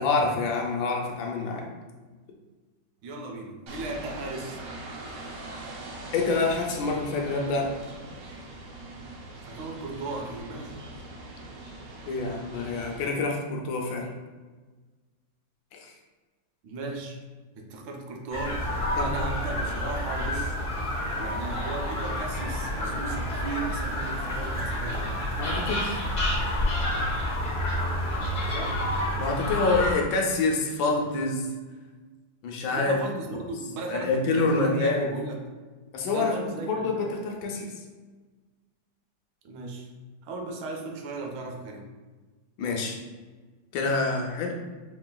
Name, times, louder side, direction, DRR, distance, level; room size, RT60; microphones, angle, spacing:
voice 1, 0.0-1.7 6.1-7.8 12.1-14.1 15.7-15.9 19.0-19.1 25.4-26.0 29.2-31.5 32.4-33.0 33.3-33.4 33.9-35.1 35.9-37.7 42.6-43.0 43.7-44.5, left 3 dB, 85° left, 1 dB, 1.4 m, -27 dB
voice 2, 3.0-4.6 9.5-10.8 16.6-17.2 17.6-20.6 21.2-25.1 28.5-28.8 32.7-35.4 36.1-37.0 39.4-39.9 40.2-41.9, right 3 dB, 90° right, 2 dB, 1.4 m, -36 dB
sound 1, 3.7-13.1, right 2 dB, 65° right, 0.9 m, -42 dB
sound 2, 18.3-29.9, left 1 dB, 55° left, 0.5 m, -29 dB
4.7 x 3.0 x 2.2 m, 1.3 s
omnidirectional pair, 2.0 m